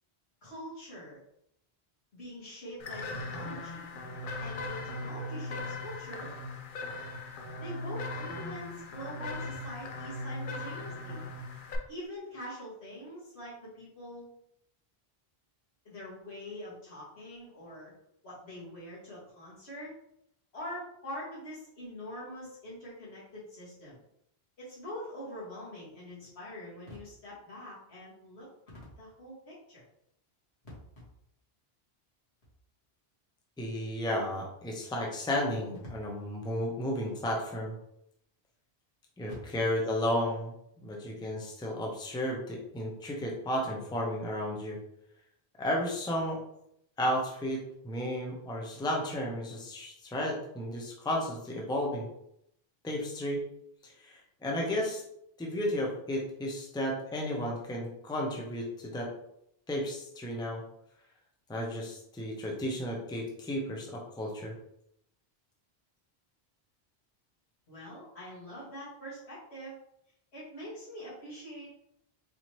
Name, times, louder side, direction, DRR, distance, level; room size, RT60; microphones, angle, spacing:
voice 1, 0.4-1.2 2.1-4.0 4.4-6.3 7.6-11.3 11.9-14.3 15.9-17.9 18.2-19.9 20.5-24.0 24.6-28.5 29.0-29.8 67.7-69.8 70.3-71.7, equal, 90° left, -7 dB, 2.0 m, -44 dB
sound 1, 2.8-11.8, left 2 dB, 60° left, 0.7 m, -39 dB
voice 2, 33.6-37.7 39.2-44.8 45.6-46.4 47.0-52.1 52.8-53.4 53.8-55.0 55.4-59.1 59.7-60.6 61.5-64.5, left 1 dB, 5° left, -1 dB, 0.5 m, -33 dB
4.0 x 2.8 x 3.1 m, 0.76 s
omnidirectional pair, 1.1 m